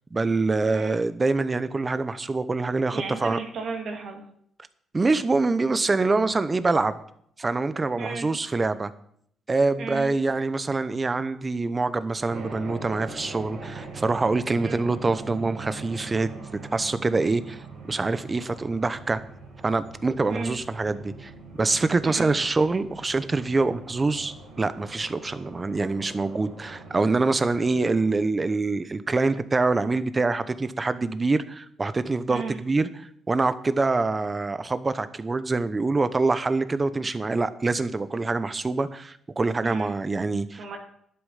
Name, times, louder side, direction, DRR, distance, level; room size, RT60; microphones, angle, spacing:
voice 1, 0.1-3.4 4.9-7.0 7.4-8.9 9.5-16.3 16.7-19.2 19.6-40.6, right 3 dB, 25° right, 0.8 m, -25 dB
voice 2, 2.9-4.3 8.0-8.3 9.8-10.2 14.6-14.8 20.3-20.6 22.0-22.3 32.3-32.6 39.6-39.9 40.6-40.8, right 4 dB, 65° right, 2.3 m, -34 dB
sound 1, 12.3-28.1, right 3 dB, 90° right, 3.9 m, -42 dB
11.0 x 8.2 x 5.7 m
cardioid pair, 90°, 0 cm